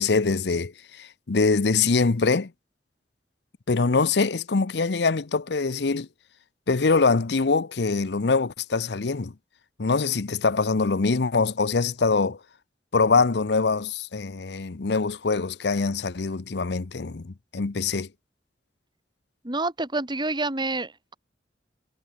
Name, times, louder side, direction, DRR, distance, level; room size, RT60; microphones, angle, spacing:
voice 1, 0.0-2.5 3.7-6.1 6.7-9.3 9.8-12.4 12.9-18.1, left 4 dB, 70° left, 0.7 m, -23 dB
voice 2, 19.4-21.2, right 2 dB, 25° right, 3.0 m, -28 dB
head